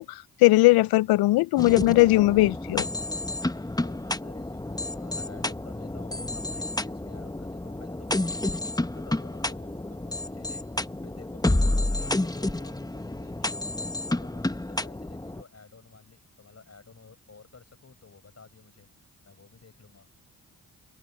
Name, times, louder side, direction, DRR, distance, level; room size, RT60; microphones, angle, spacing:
voice 1, 0.0-2.9, left 19 dB, 85° left, 0.5 m, -19 dB
sound 1, 1.6-15.4, left 2 dB, 10° left, 1.2 m, -30 dB
voice 2, 3.5-10.6 11.0-13.7 14.1-18.9 19.3-20.1, left 4 dB, 40° left, 5.7 m, -52 dB
supercardioid pair, 45°, 36 cm